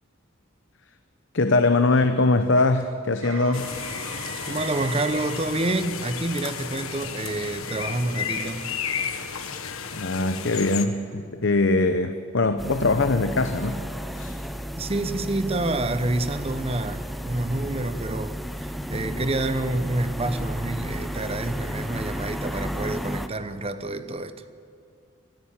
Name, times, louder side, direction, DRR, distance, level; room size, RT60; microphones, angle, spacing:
voice 1, 1.3-3.7 9.9-13.8 14.1-14.4, left 2 dB, 60° left, 8 dB, 0.8 m, -22 dB
Motor vehicle (road), 3.2-11.1 15.5-15.6, right 4 dB, 75° right, 1.8 m, -44 dB
sound 1, 3.5-10.8, left 6 dB, 90° left, 1.4 m, -33 dB
voice 2, 4.4-8.7 10.5-10.6 14.8-24.4, right 2 dB, 30° right, 11 dB, 0.9 m, -28 dB
sound 2, 12.6-23.3, equal, ahead, 0.7 m, -33 dB
24.0 x 13.0 x 8.9 m, 2.3 s
head